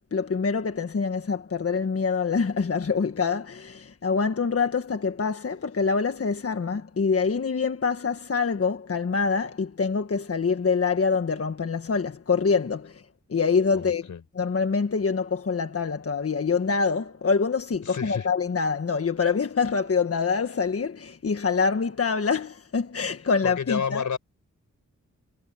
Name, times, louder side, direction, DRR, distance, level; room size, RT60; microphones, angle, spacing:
voice 1, 0.1-13.0 13.3-14.1 14.3-24.0, left 5 dB, 50° left, 1.5 m, -25 dB
voice 2, 13.7-14.2 17.8-18.3 23.4-24.2, left 6 dB, 85° left, 4.5 m, -30 dB
cardioid pair, 70°, 29 cm